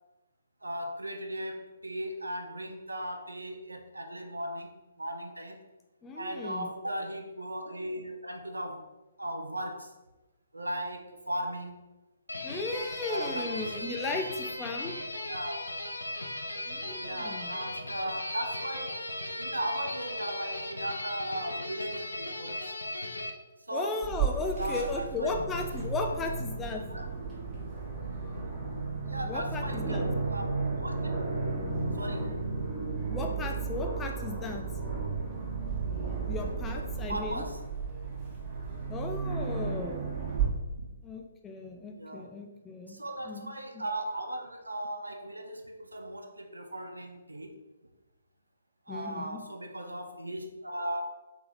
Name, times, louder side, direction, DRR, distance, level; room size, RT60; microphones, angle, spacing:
voice 1, 0.6-5.6 6.2-8.9 9.2-9.9 10.5-11.8 13.1-13.7 15.3-15.6 16.8-19.1 19.4-22.6 23.6-24.0 24.5-25.4 26.9-27.1 28.4-28.6 29.1-31.1 32.0-32.3 37.1-37.6 40.7-40.9 42.0-42.3 42.9-47.5 48.9-51.0, right 1 dB, 80° right, 5 dB, 0.5 m, -37 dB
voice 2, 6.0-6.7 12.4-15.0 16.7-17.5 23.7-26.8 29.3-30.1 33.1-34.6 36.3-37.4 38.9-40.0 41.0-43.0 43.3-43.5 43.7-43.8 48.9-49.4, left 3 dB, 15° left, 2 dB, 0.4 m, -36 dB
sound 1, 12.3-23.3, left 1 dB, 80° left, 0.4 m, -37 dB
Aircraft, 24.0-40.4, right 4 dB, 20° right, 1.1 m, -34 dB
3.4 x 3.3 x 2.5 m, 1.1 s
figure-of-eight pair, 130°, 0 cm